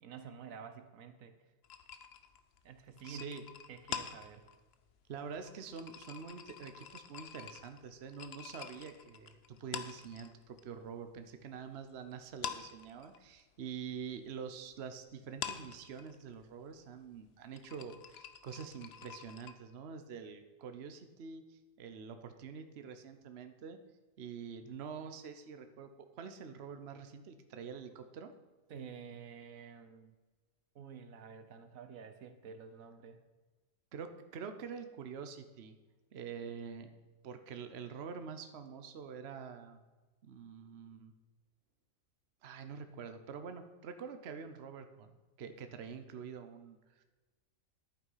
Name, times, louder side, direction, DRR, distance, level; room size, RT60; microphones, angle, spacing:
voice 1, 0.0-1.4 2.6-3.3 3.7-4.5 28.7-30.1 30.7-33.2, right 6 dB, 80° right, 9 dB, 1.4 m, -50 dB
sound 1, 1.6-10.6 10.9-12.0 12.3-19.5, left 8 dB, 55° left, 0.9 m, -47 dB
voice 2, 3.0-3.4 5.1-23.8 24.2-25.9 26.2-28.3 33.9-35.8 36.1-36.9 37.2-39.8 40.2-41.1 42.4-47.0, right 6 dB, 55° right, 8 dB, 1.1 m, -46 dB
11.0 x 9.0 x 5.6 m, 1.2 s
omnidirectional pair, 1.4 m